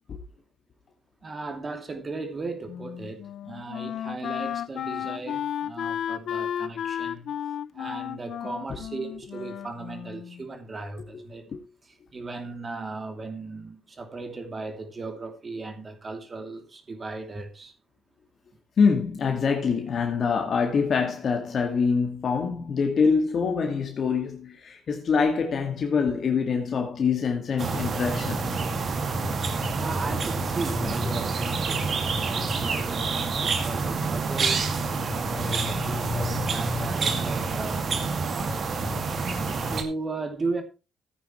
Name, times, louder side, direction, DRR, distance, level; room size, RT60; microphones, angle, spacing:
voice 1, 1.2-7.3 7.7-11.5 11.8-17.7 29.8-34.7 35.1-38.8 39.5-40.6, right 3 dB, 35° right, 2.8 m, -36 dB
Wind instrument woodwind instrument, 2.7-10.5, left 9 dB, 70° left, 0.6 m, -33 dB
voice 2, 18.8-28.6, left 5 dB, 55° left, 1.9 m, -25 dB
sound 1, 27.6-39.8, right 3 dB, 50° right, 2.2 m, -27 dB
15.0 x 9.3 x 3.1 m
cardioid pair, 90°, 0 cm